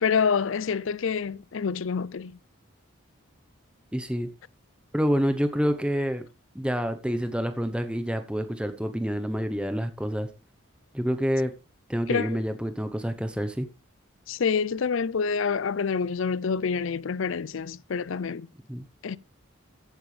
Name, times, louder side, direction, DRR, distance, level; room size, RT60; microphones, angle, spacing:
voice 1, 0.0-2.4 12.1-12.4 14.3-18.5 19.0-19.2, left 6 dB, 70° left, 0.5 m, -27 dB
voice 2, 3.9-4.3 4.9-6.3 6.5-10.3 10.9-11.5 11.9-13.7 18.7-18.8, equal, 5° right, 0.8 m, -27 dB
14.5 x 8.9 x 3.3 m
head